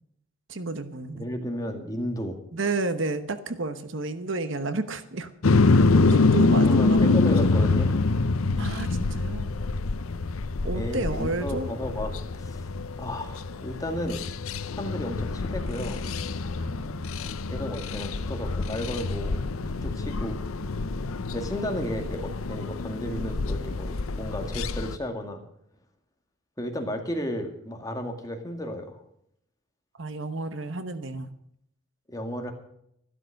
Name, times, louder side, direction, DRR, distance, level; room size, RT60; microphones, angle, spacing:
voice 1, 0.5-1.3 2.5-5.3 5.6-7.0 7.3-7.4 8.6-9.5 10.6-11.7 16.6-17.2 19.6-19.9 20.6-20.9 30.0-31.3, right 3 dB, 60° right, 11 dB, 1.0 m, -32 dB
voice 2, 1.1-2.4 6.4-8.1 10.7-12.7 13.0-14.3 14.6-16.0 17.5-19.4 19.8-20.4 21.3-25.4 26.6-29.0 32.1-32.5, equal, 15° left, 3 dB, 1.9 m, -33 dB
sound 1, 5.4-25.0, left 3 dB, 80° left, 0.7 m, -26 dB
13.0 x 12.5 x 6.5 m, 0.73 s
head